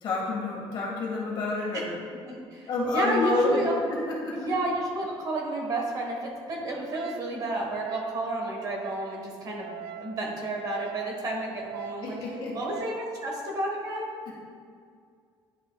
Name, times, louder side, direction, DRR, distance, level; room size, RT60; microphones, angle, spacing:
voice 1, 0.0-1.9 2.7-3.6 3.9-4.5 12.0-12.6, left 2 dB, 50° left, -3 dB, 1.6 m, -29 dB
voice 2, 2.3-3.8 4.3-12.2 12.5-14.1, right 1 dB, 40° right, 0 dB, 1.1 m, -31 dB
Wind instrument woodwind instrument, 6.9-13.1, right 8 dB, 65° right, 0.3 m, -42 dB
10.0 x 5.3 x 2.2 m, 2.2 s
cardioid pair, 175°, 10 cm